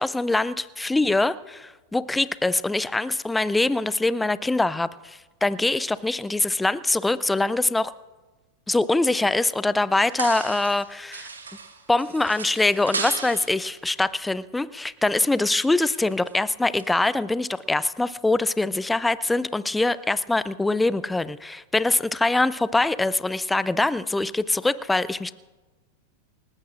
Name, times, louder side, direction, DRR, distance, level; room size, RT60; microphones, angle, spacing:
voice 1, 0.0-7.9 8.7-11.3 11.9-25.3, left 2 dB, 5° left, 17 dB, 0.5 m, -23 dB
sound 1, 10.0-10.9 11.1-13.6 15.8-16.3 16.7-16.8, right 4 dB, 75° right, 1.8 m, -34 dB
29.0 x 15.0 x 2.5 m, 1.2 s
figure-of-eight pair, 90°, 0 cm